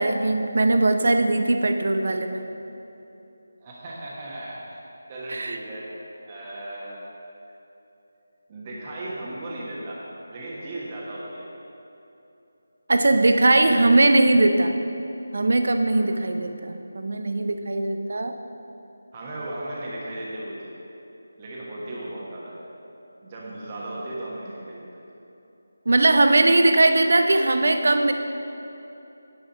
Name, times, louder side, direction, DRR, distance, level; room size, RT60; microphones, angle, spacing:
voice 1, 0.0-2.4 5.3-5.6 12.9-14.7 15.3-18.3 25.9-28.1, right 2 dB, 50° right, 7 dB, 0.7 m, -20 dB
voice 2, 3.6-4.8 5.1-5.9 6.2-7.1 8.5-11.5 15.9-16.2 19.1-20.7 21.4-22.6 23.2-24.9, right 1 dB, 25° right, -6 dB, 1.3 m, -36 dB
10.0 x 5.4 x 6.6 m, 2.9 s
figure-of-eight pair, 160°, 0 cm